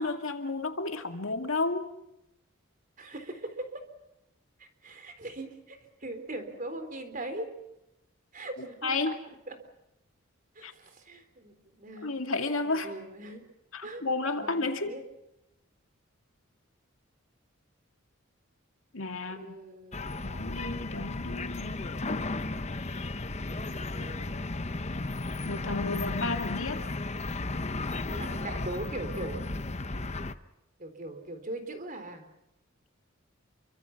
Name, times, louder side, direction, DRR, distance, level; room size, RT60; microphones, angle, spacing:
voice 1, 0.0-1.9 8.8-9.2 10.6-10.7 12.0-12.9 13.7-15.0 18.9-19.6 20.2-21.9 25.4-26.8, left 3 dB, 75° left, 6 dB, 2.3 m, -32 dB
voice 2, 3.0-3.8 4.6-7.5 8.3-9.1 9.5-9.6 10.5-12.1 12.6-13.4 13.8-14.0 14.4-15.0 19.1-20.3 23.4-24.3 25.8-26.4 28.1-29.5 30.8-32.3, right 2 dB, 40° right, 8 dB, 3.8 m, -41 dB
sound 1, 19.9-30.3, left 2 dB, 30° left, 0.9 m, -34 dB
29.0 x 24.5 x 6.0 m, 0.89 s
head